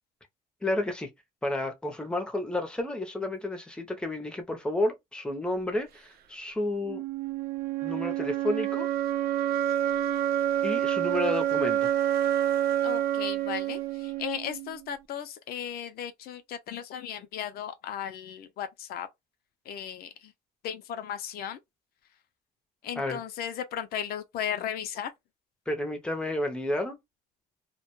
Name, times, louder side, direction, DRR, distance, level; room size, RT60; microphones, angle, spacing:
voice 1, 0.6-1.1 1.4-7.0 7.8-8.9 10.6-11.9 23.0-23.2 25.7-27.0, left 1 dB, 5° left, 0.6 m, -31 dB
sound 1, 6.9-14.8, right 11 dB, 65° right, 0.4 m, -28 dB
voice 2, 12.8-19.1 19.7-20.3 20.6-21.6 22.8-25.1, left 9 dB, 65° left, 0.4 m, -36 dB
2.1 x 2.1 x 2.9 m
cardioid pair, 110°, 17 cm